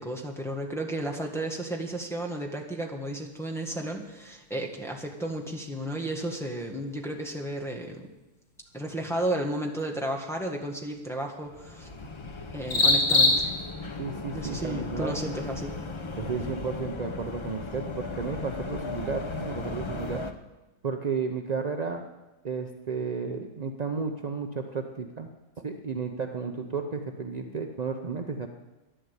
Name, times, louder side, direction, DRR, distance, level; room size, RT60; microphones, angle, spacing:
voice 1, 0.0-8.1 8.7-11.9 12.5-13.5 14.3-15.7, right 1 dB, ahead, -1 dB, 1.5 m, -33 dB
sound 1, 3.1-19.9, left 2 dB, 80° left, 3.1 m, -33 dB
sound 2, 11.5-20.3, left 3 dB, 35° left, 0.4 m, -36 dB
voice 2, 14.0-15.2 16.2-20.2 20.8-22.0 22.4-25.3 25.6-28.5, right 5 dB, 50° right, 4 dB, 0.4 m, -33 dB
11.0 x 11.0 x 8.2 m, 1.1 s
omnidirectional pair, 1.8 m